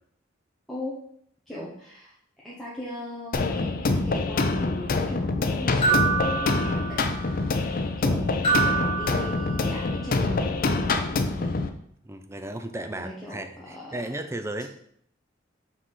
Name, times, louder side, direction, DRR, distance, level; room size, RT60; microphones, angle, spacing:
voice 1, 1.5-2.1 2.4-7.2 7.5-11.6 12.9-14.2, left 1 dB, ahead, -8 dB, 1.1 m, -38 dB
sound 1, 3.3-11.7, left 3 dB, 50° left, 0.5 m, -25 dB
sound 2, 5.8-7.3 8.4-9.9, right 4 dB, 30° left, 1.9 m, -26 dB
voice 2, 12.0-14.7, right 1 dB, 15° right, 8 dB, 0.4 m, -35 dB
6.0 x 4.1 x 4.7 m, 0.69 s
head